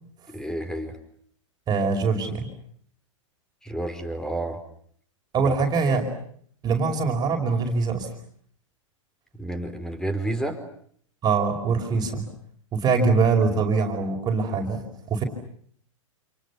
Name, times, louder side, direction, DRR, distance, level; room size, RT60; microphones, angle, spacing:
voice 1, 0.3-0.9 3.6-4.6 9.4-10.6, right 1 dB, 5° left, 10 dB, 4.8 m, -30 dB
voice 2, 1.7-2.5 5.3-6.1 6.6-8.1 11.2-12.3 12.7-15.2, right 4 dB, 25° right, 3 dB, 5.1 m, -23 dB
29.5 x 28.5 x 7.1 m, 0.63 s
figure-of-eight pair, 110°, 17 cm